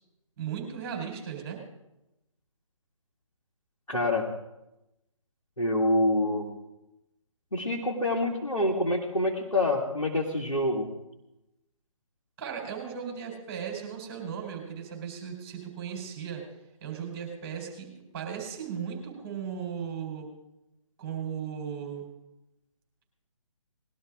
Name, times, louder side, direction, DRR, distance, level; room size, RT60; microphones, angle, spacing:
voice 1, 0.4-1.6 12.4-16.4 16.8-20.3 21.0-22.1, right 7 dB, 25° right, 1 dB, 4.3 m, -36 dB
voice 2, 3.9-4.3 5.6-6.5 7.5-10.9, left 1 dB, 85° left, -3 dB, 2.2 m, -26 dB
20.0 x 12.0 x 3.7 m, 0.92 s
figure-of-eight pair, 140°, 18 cm